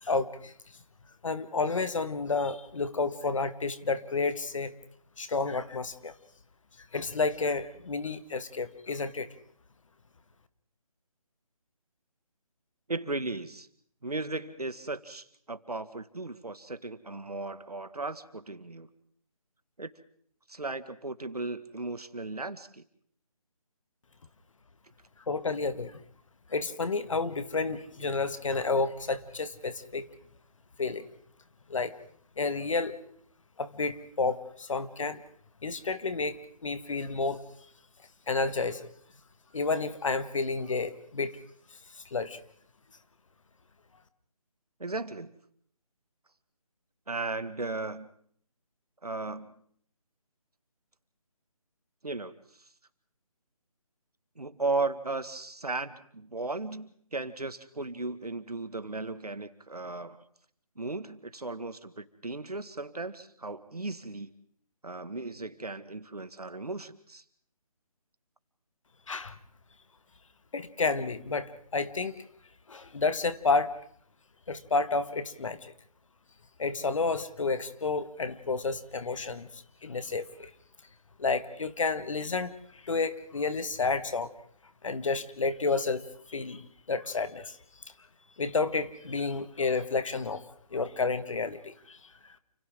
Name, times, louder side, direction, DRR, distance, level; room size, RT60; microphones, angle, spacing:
voice 1, 0.0-0.5 1.2-4.7 5.2-6.1 6.9-9.3 25.3-26.0 26.5-30.1 30.8-31.1 31.7-31.9 32.4-33.0 33.6-35.2 35.6-37.4 38.3-38.9 39.5-41.4 42.0-42.4 69.1-69.4 70.5-72.1 72.7-73.7 74.5-75.7 76.6-80.5 81.2-84.3 84.8-86.0 86.3-87.6 88.4-90.4 90.7-92.0, left 4 dB, 60° left, 12 dB, 1.7 m, -30 dB
voice 2, 12.9-13.7 14.0-18.9 19.8-19.9 20.5-22.8 44.8-45.3 47.1-48.1 49.0-49.6 52.0-52.3 54.4-60.2 60.8-64.3 64.8-67.2, right 3 dB, 85° right, 12 dB, 1.9 m, -36 dB
29.5 x 28.0 x 3.8 m, 0.64 s
figure-of-eight pair, 155°, 19 cm